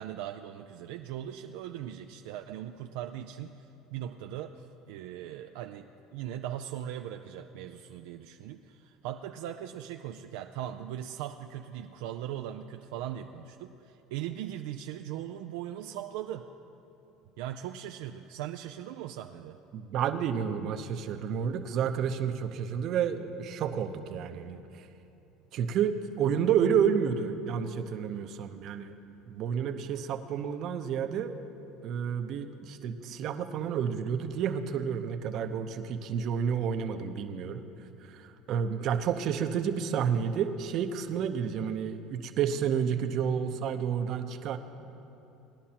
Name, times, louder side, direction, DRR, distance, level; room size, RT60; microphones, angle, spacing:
voice 1, 0.0-16.5 17.4-19.6, right 11 dB, 80° right, 5 dB, 0.4 m, -39 dB
voice 2, 19.7-24.6 25.5-29.0 29.3-31.3 31.8-37.6 38.1-44.6, right 7 dB, 55° right, 6 dB, 0.8 m, -30 dB
19.5 x 11.0 x 2.9 m, 3.0 s
supercardioid pair, 110°, 0 cm